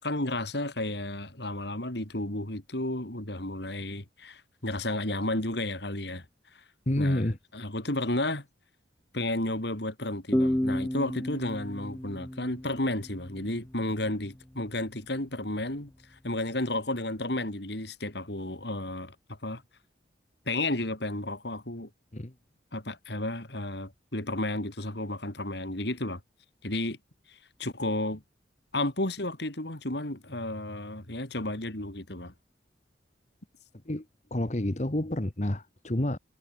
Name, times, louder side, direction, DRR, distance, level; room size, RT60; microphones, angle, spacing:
voice 1, 0.0-6.2 7.0-7.3 7.5-8.5 9.1-19.6 20.5-21.9 22.7-26.2 26.6-27.0 27.3-28.2 28.7-32.3, left 1 dB, 65° left, 3.6 m, -32 dB
voice 2, 6.9-7.4 22.1-22.3 33.9-34.0 34.3-36.2, left 1 dB, 40° left, 1.4 m, -29 dB
sound 1, 10.3-13.7, left 1 dB, 10° left, 0.5 m, -31 dB
head